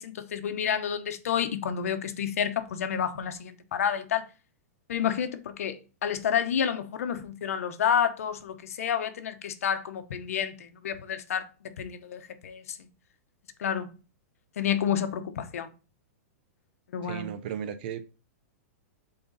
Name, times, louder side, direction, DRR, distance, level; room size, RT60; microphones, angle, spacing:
voice 1, 0.0-4.3 4.9-12.9 13.6-13.9 14.6-15.7 16.9-17.3, left 8 dB, 75° left, 1.1 m, -30 dB
voice 2, 17.0-18.0, right 8 dB, 40° right, 0.5 m, -35 dB
7.8 x 3.9 x 4.0 m
supercardioid pair, 170°, 8 cm